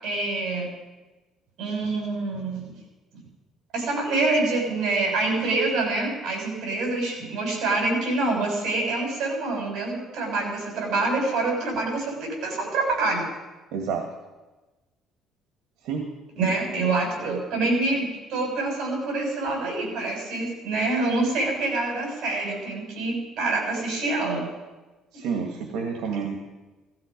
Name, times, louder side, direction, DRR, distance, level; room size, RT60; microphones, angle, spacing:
voice 1, 0.0-0.7 1.6-2.7 3.7-13.3 16.4-24.4, right 2 dB, 60° right, 0 dB, 7.4 m, -26 dB
voice 2, 13.7-14.0 15.8-16.0 25.1-26.4, right 6 dB, 85° right, 3 dB, 2.0 m, -29 dB
17.5 x 15.0 x 5.3 m, 1.2 s
cardioid pair, 135°, 0 cm